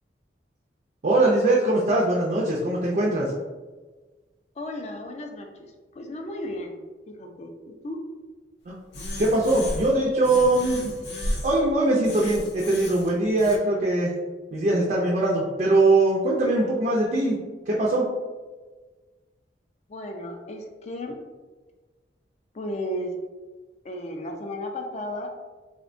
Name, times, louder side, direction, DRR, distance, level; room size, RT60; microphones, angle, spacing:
voice 1, 1.0-3.3 8.7-8.8 9.2-10.9 11.4-14.1 14.5-17.4 17.7-18.1, right 2 dB, 45° right, -4 dB, 0.4 m, -21 dB
voice 2, 4.6-6.8 7.1-8.0 19.9-21.2 22.5-23.2 23.8-25.3, left 1 dB, 40° left, 3 dB, 0.4 m, -34 dB
sound 1, 8.9-10.0 10.2-11.6 12.0-13.6, left 1 dB, 85° left, 0.6 m, -34 dB
3.5 x 2.1 x 2.5 m, 1.3 s
head